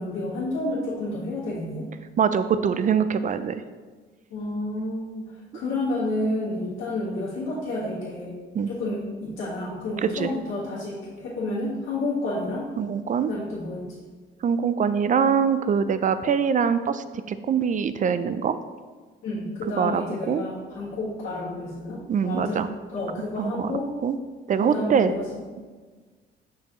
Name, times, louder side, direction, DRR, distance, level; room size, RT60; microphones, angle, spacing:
voice 1, 0.0-1.9 4.3-8.3 8.7-12.7 13.2-13.9 19.2-23.9 24.6-25.4, left 2 dB, 85° left, -9 dB, 1.7 m, -30 dB
voice 2, 2.2-3.6 8.5-8.7 10.0-10.3 12.8-13.3 14.4-18.6 19.8-20.4 22.1-22.7 23.4-23.7 24.0-24.2 24.5-25.1, right 7 dB, 40° right, 12 dB, 0.4 m, -23 dB
6.7 x 5.6 x 3.1 m, 1.4 s
cardioid pair, 90°, 20 cm